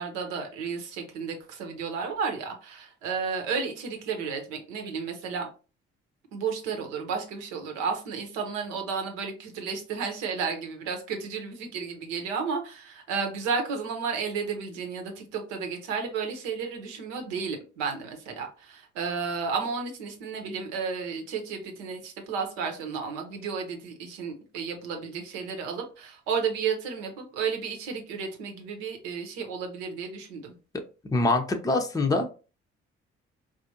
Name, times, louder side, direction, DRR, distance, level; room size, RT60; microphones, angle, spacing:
voice 1, 0.0-5.5 6.3-30.5, right 5 dB, 75° right, 3 dB, 0.9 m, -32 dB
voice 2, 31.1-32.3, left 2 dB, 10° left, 5 dB, 0.6 m, -24 dB
4.8 x 2.5 x 2.8 m, 0.35 s
figure-of-eight pair, 40°, 35 cm